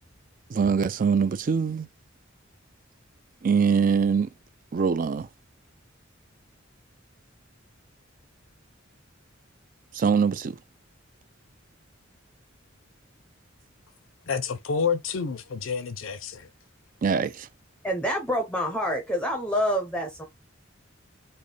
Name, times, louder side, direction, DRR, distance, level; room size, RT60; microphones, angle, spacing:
voice 1, 0.5-1.9 3.4-4.3 4.7-5.3 9.9-10.6 17.0-17.5, right 6 dB, 45° right, 0.4 m, -23 dB
voice 2, 14.3-16.5, left 6 dB, 85° left, 0.6 m, -29 dB
voice 3, 17.8-20.2, equal, 5° left, 0.6 m, -27 dB
4.1 x 2.1 x 3.2 m
head